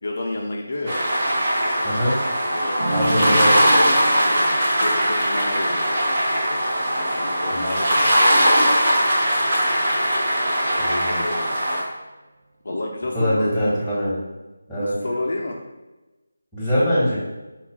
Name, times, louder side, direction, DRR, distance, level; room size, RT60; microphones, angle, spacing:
voice 1, 0.0-1.0 2.5-3.9 4.1-4.5 4.8-5.8 7.2-8.8 10.9-11.8 12.6-13.8 14.8-15.6, left 2 dB, 60° left, 0 dB, 0.5 m, -31 dB
sound 1, 0.9-11.8, equal, 40° right, 0.9 m, -20 dB
voice 2, 1.8-2.1 2.9-3.6 7.5-7.8 10.8-11.2 13.1-14.1 14.7-14.9 16.5-17.2, equal, ahead, -10 dB, 1.4 m, -23 dB
sound 2, 2.8-8.3, right 1 dB, 85° right, 0.9 m, -32 dB
4.3 x 2.3 x 3.6 m, 1.1 s
figure-of-eight pair, 165°, 0 cm